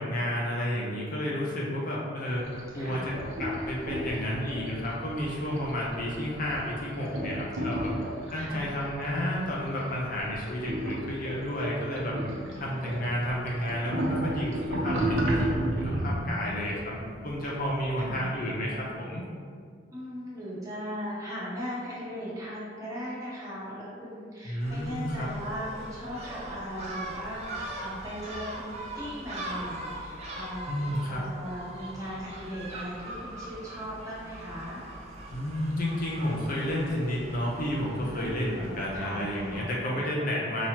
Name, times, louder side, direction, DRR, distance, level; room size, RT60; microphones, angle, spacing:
voice 1, 0.0-2.4 2.7-7.9 8.3-12.2 12.6-17.0 17.2-19.2 24.4-25.3 30.7-31.2 35.3-40.7, equal, 45° left, -4 dB, 0.6 m, -31 dB
sound 1, 2.3-18.4, right 1 dB, 75° right, 0.8 m, -34 dB
voice 2, 8.3-8.7 12.4-12.9 16.2-17.2 18.0-18.3 19.9-34.8 38.1-39.7, equal, 15° right, -8 dB, 1.1 m, -39 dB
Gull seagull, 24.6-39.6, right 1 dB, 30° right, 0.5 m, -41 dB
5.5 x 2.9 x 2.9 m, 2.1 s
head